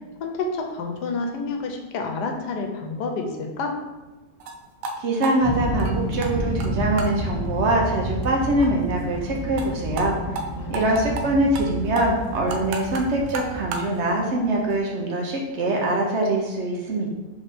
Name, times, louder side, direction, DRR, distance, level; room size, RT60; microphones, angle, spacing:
voice 1, 0.2-3.8 10.6-11.2, left 3 dB, 85° left, 3 dB, 1.2 m, -29 dB
sound 1, 4.4-4.5 4.8-4.9 5.2-6.3 6.6-6.7 7.0-7.1 7.4-7.5 7.8-7.9 8.2-8.3 8.6-8.7 8.9-9.0 9.3-9.7 10.0-10.1 10.4-10.5 10.7-11.2 11.5-11.7 12.0-13.9, right 3 dB, 90° right, 1.2 m, -32 dB
voice 2, 5.0-10.2 10.7-17.1, right 1 dB, 60° right, 0 dB, 0.7 m, -23 dB
sound 2, 5.4-14.8, equal, 30° left, 0.6 m, -30 dB
3.5 x 3.4 x 4.1 m, 1.2 s
omnidirectional pair, 1.7 m